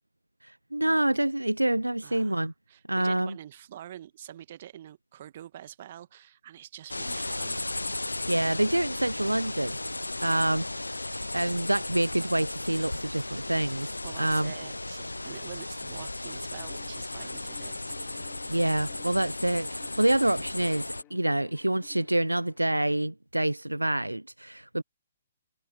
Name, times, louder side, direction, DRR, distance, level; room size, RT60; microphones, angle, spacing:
voice 1, 0.4-2.5 2.9-3.4 8.3-9.8 10.2-14.5 18.5-24.8, right 1 dB, 85° right, 0.6 m, -27 dB
voice 2, 2.0-7.6 10.2-10.6 14.0-17.9, right 11 dB, 45° right, 1.7 m, -46 dB
sound 1, 6.9-21.0, left 2 dB, 80° left, 0.8 m, -35 dB
Bowed string instrument, 16.5-23.1, left 21 dB, 25° left, 3.1 m, -57 dB
figure-of-eight pair, 125°, 0 cm